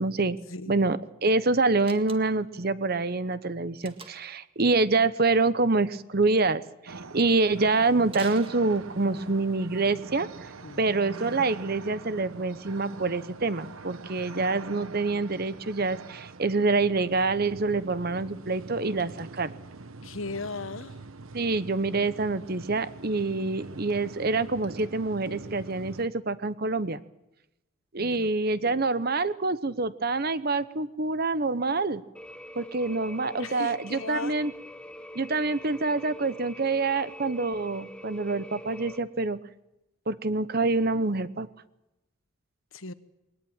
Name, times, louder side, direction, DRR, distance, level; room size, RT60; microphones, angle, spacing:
voice 1, 0.0-0.4 0.7-10.3 10.8-19.6 21.3-27.0 27.9-32.0 32.6-34.5 35.1-39.4 40.1-41.5, right 3 dB, 50° right, 14 dB, 1.0 m, -26 dB
Slam, 1.8-2.5 3.8-4.4 8.1-9.2, right 4 dB, 25° right, 1.7 m, -45 dB
sound 1, 6.9-26.1, right 3 dB, 85° right, 1.1 m, -43 dB
voice 2, 20.0-21.0 28.0-28.3 33.4-34.4 42.7-42.9, left 3 dB, 75° left, 12 dB, 1.3 m, -37 dB
sound 2, 32.1-39.0, left 1 dB, 5° left, 1.2 m, -44 dB
21.5 x 19.5 x 8.9 m, 0.94 s
head